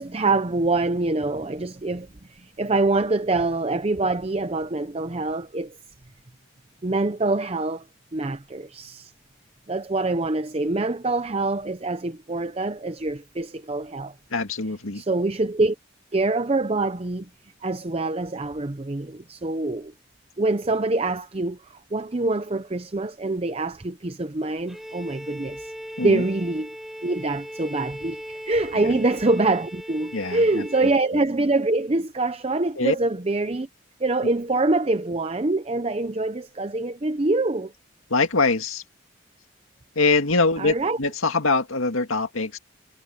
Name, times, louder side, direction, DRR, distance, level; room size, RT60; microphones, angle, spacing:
voice 1, 0.0-5.8 6.8-7.9 8.1-9.1 9.7-14.1 14.9-15.8 16.1-17.3 17.6-19.9 20.4-21.6 21.9-25.7 26.0-26.7 27.0-33.7 34.0-37.7 40.6-41.0, right 2 dB, 30° right, 0.7 m, -25 dB
voice 2, 14.3-15.0 26.0-26.2 28.7-29.0 30.1-30.9 32.8-33.0 38.1-38.8 40.0-42.6, left 3 dB, 90° left, 2.0 m, -23 dB
Bowed string instrument, 24.7-31.0, equal, ahead, 4.5 m, -38 dB
head